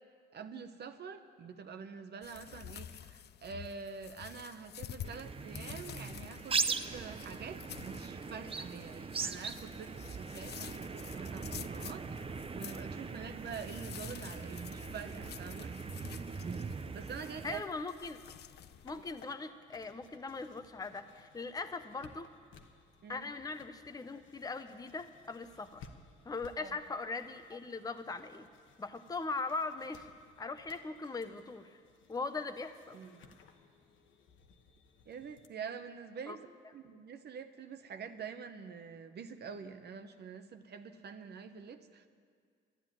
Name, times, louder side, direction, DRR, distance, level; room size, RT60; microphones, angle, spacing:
voice 1, 0.3-15.7 16.9-17.6 23.0-23.3 26.6-26.7 32.9-33.4 35.1-36.4 36.7-42.1, right 6 dB, 55° right, 8 dB, 0.9 m, -46 dB
sound 1, 2.2-19.2, left 11 dB, 55° left, 0.4 m, -50 dB
sound 2, 5.0-17.6, right 4 dB, 30° right, 0.6 m, -40 dB
sound 3, 16.7-35.5, left 5 dB, 75° left, 1.1 m, -61 dB
voice 2, 17.4-18.2 18.8-22.3 23.1-25.9 26.2-28.5 28.8-30.1 30.4-31.8 32.1-33.0 36.3-36.4, left 3 dB, 20° left, 8 dB, 0.7 m, -40 dB
12.5 x 10.5 x 9.0 m, 2.1 s
cardioid pair, 90°, 20 cm